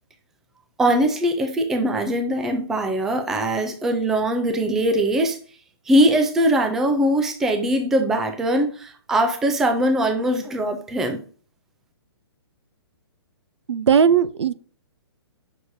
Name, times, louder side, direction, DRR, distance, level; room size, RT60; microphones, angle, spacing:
voice 1, 0.8-5.4 5.9-11.2, right 1 dB, 5° right, 0.3 m, -21 dB
voice 2, 13.7-14.5, right 7 dB, 85° right, 0.6 m, -17 dB
7.9 x 6.3 x 2.7 m
hypercardioid pair, 165°, 14 cm